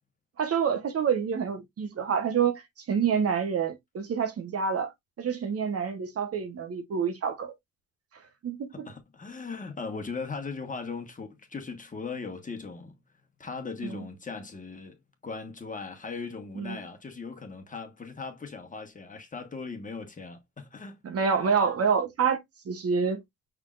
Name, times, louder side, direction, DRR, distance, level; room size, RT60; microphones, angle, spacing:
voice 1, 0.4-2.6 2.9-4.9 5.2-7.5 8.4-8.9 13.8-14.0 16.5-16.8 21.0-23.2, right 6 dB, 50° right, 1.1 m, -27 dB
voice 2, 8.7-13.0 13.4-15.0 15.2-21.0, left 4 dB, 25° left, 1.3 m, -38 dB
5.8 x 3.5 x 2.4 m
cardioid pair, 90°, 30 cm